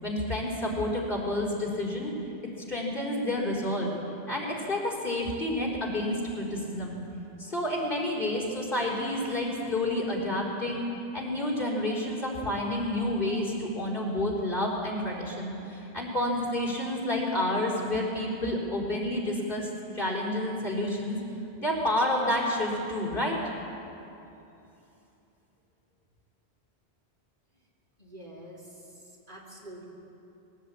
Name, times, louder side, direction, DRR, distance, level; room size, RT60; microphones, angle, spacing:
voice 1, 0.0-2.1 2.7-3.9 4.3-7.0 7.4-10.9 11.1-19.7 19.9-21.2 21.6-23.4, left 1 dB, 55° left, -3 dB, 4.5 m, -29 dB
voice 2, 28.0-28.9 29.3-29.9, right 1 dB, 45° right, -2 dB, 3.7 m, -46 dB
21.5 x 17.5 x 8.6 m, 2.8 s
omnidirectional pair, 1.1 m